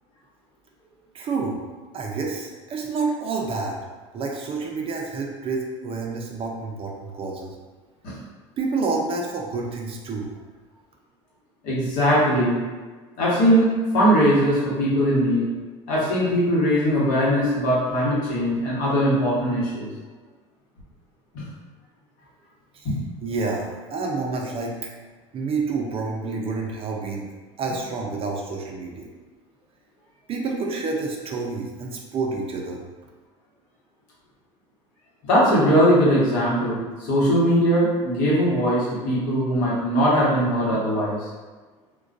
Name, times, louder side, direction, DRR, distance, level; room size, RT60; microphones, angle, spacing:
voice 1, 1.1-1.6 1.9-3.8 4.1-7.6 8.6-10.3 22.7-22.9 23.2-24.9 25.3-27.3 27.6-29.0 30.3-32.8, right 4 dB, 40° right, 0 dB, 0.5 m, -28 dB
voice 2, 11.6-12.6 13.2-15.5 15.9-19.9 21.3-21.4 22.8-23.0 35.2-41.2, equal, 70° left, -7 dB, 1.1 m, -20 dB
2.3 x 2.2 x 2.5 m, 1.3 s
supercardioid pair, 90°, 15 cm